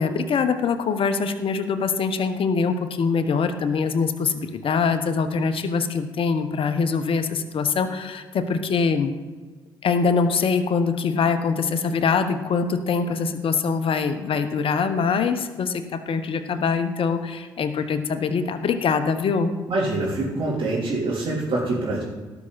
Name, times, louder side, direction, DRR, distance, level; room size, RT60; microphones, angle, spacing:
voice 1, 0.0-9.1 9.8-19.5, left 5 dB, 55° left, 9 dB, 1.1 m, -23 dB
voice 2, 19.7-22.0, right 2 dB, 50° right, -8 dB, 3.7 m, -25 dB
17.5 x 6.0 x 4.3 m, 1.3 s
hypercardioid pair, 40°, 11 cm